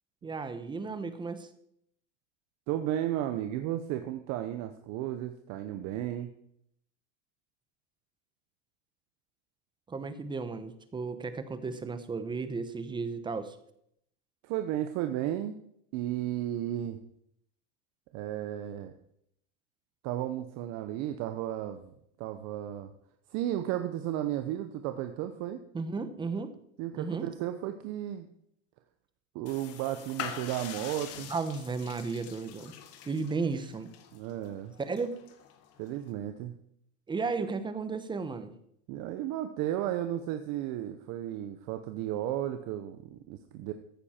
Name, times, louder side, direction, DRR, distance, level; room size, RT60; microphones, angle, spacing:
voice 1, 0.2-1.5 9.9-13.6 25.7-26.5 26.9-27.3 31.3-32.7 33.1-33.9 34.8-35.2 37.1-38.5, right 4 dB, 15° right, 11 dB, 1.0 m, -34 dB
voice 2, 2.7-6.3 14.4-15.6 15.9-17.0 18.1-18.9 20.0-21.9 22.2-22.9 23.3-25.6 26.8-28.3 29.3-31.3 34.1-34.7 35.8-36.5 38.9-43.7, right 12 dB, 45° right, 8 dB, 0.9 m, -34 dB
sound 1, 29.5-36.1, left 9 dB, 40° left, 1.5 m, -45 dB
14.5 x 9.7 x 4.4 m, 0.72 s
supercardioid pair, 135°, 36 cm